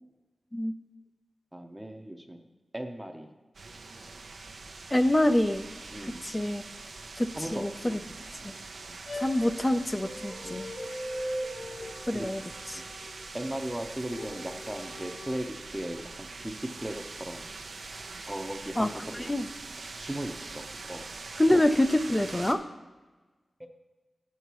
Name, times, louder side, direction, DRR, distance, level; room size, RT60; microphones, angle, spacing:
voice 1, 1.5-2.4 2.7-3.3 5.9-6.2 7.3-8.0 8.9-9.0 10.4-10.6 12.1-12.3 12.8-12.9 13.3-17.5 18.2-19.3 19.9-21.0, right 1 dB, 10° right, 4 dB, 0.8 m, -37 dB
sound 1, 3.5-22.5, right 3 dB, 80° right, 0.7 m, -43 dB
voice 2, 4.9-5.7 6.2-6.6 7.2-8.0 8.4-8.5 9.1-10.7 12.1-12.4 12.7-12.8 18.8-19.5 21.4-22.6, left 1 dB, 20° left, 10 dB, 0.5 m, -26 dB
sound 2, 9.1-13.4 14.1-15.4, equal, 70° left, 1.9 m, -39 dB
12.0 x 8.3 x 3.1 m, 1.3 s
wide cardioid pair, 80°, 0 cm